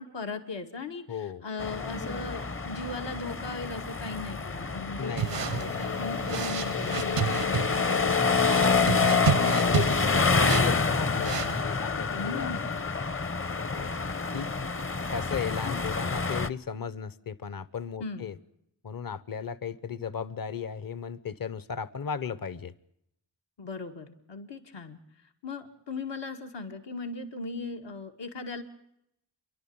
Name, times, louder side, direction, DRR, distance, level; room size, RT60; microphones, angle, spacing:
voice 1, 0.0-8.2 12.1-12.7 15.6-15.8 18.0-18.3 23.6-28.6, left 3 dB, 85° left, 4 dB, 2.2 m, -38 dB
voice 2, 1.1-1.4 5.0-5.6 8.5-8.9 9.5-12.6 13.7-13.9 14.3-14.5 15.1-18.4 18.8-22.7, left 6 dB, 55° left, 16 dB, 1.0 m, -36 dB
sound 1, 1.6-16.5, left 4 dB, 30° left, 0.8 m, -27 dB
sound 2, 5.2-11.6, right 9 dB, 85° right, 0.7 m, -32 dB
30.0 x 12.0 x 8.7 m, 0.79 s
wide cardioid pair, 115°, 42 cm